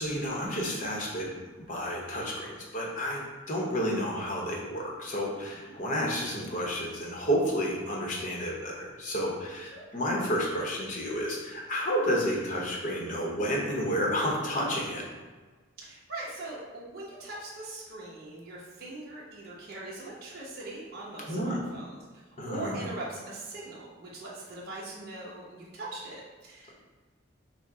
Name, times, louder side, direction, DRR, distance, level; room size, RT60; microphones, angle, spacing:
voice 1, 0.0-1.3 1.7-15.0 21.3-21.6 22.4-22.8, equal, 35° left, -2 dB, 0.8 m, -31 dB
voice 2, 15.8-22.0 22.3-26.7, right 2 dB, 45° right, -6 dB, 0.8 m, -41 dB
5.7 x 2.1 x 3.7 m, 1.3 s
head